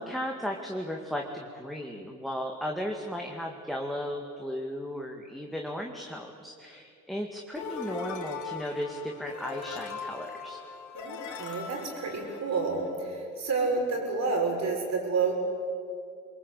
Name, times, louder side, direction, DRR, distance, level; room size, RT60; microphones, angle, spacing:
voice 1, 0.0-10.6, equal, ahead, 1 dB, 2.2 m, -35 dB
sound 1, 7.5-13.0, left 5 dB, 75° left, 3.1 m, -40 dB
voice 2, 10.9-15.3, right 4 dB, 60° right, 1 dB, 6.6 m, -29 dB
24.0 x 22.0 x 8.5 m, 2.3 s
cardioid pair, 90°, 30 cm